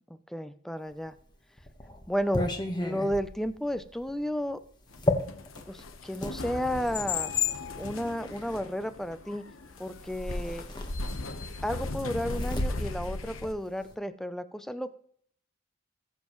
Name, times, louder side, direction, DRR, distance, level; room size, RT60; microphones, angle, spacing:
voice 1, 0.1-1.1 2.1-2.4 2.8-4.6 5.7-7.3 7.8-9.4 9.8-10.6 11.6-14.9, equal, ahead, 11 dB, 0.5 m, -32 dB
sound 1, 1.1-6.4 7.3-8.6 9.9-10.0 10.3-11.4 11.7-13.9, left 1 dB, 20° left, 1.3 m, -35 dB
sound 2, 4.9-13.5, left 4 dB, 80° left, 1.1 m, -35 dB
19.5 x 7.3 x 3.1 m, 0.63 s
head